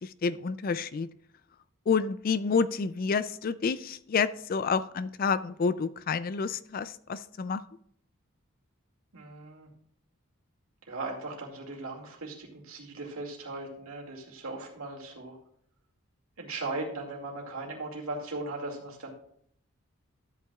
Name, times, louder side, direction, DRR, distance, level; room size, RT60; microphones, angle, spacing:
voice 1, 0.0-1.1 1.9-7.6, left 5 dB, 40° left, 15 dB, 0.3 m, -29 dB
voice 2, 9.1-9.7 10.9-15.4 16.4-19.1, right 2 dB, 75° right, 0 dB, 2.3 m, -38 dB
13.0 x 8.6 x 2.4 m, 0.64 s
head